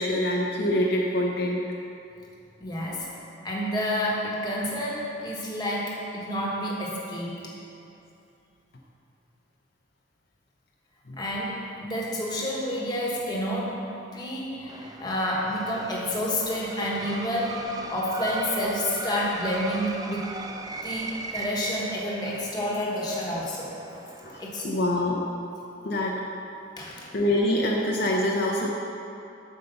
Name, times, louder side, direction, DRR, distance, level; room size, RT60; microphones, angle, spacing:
voice 1, 0.0-1.6 11.1-11.2 24.2-25.2 25.8-26.2 27.1-28.7, left 1 dB, 55° left, -2 dB, 0.7 m, -25 dB
voice 2, 2.6-3.1 3.4-7.5 11.2-20.3 20.8-23.7 24.4-24.7 26.8-27.1, equal, 20° left, -4 dB, 1.3 m, -29 dB
sound 1, 14.7-24.6, right 3 dB, 20° right, 0.4 m, -38 dB
8.0 x 5.0 x 6.9 m, 2.7 s
head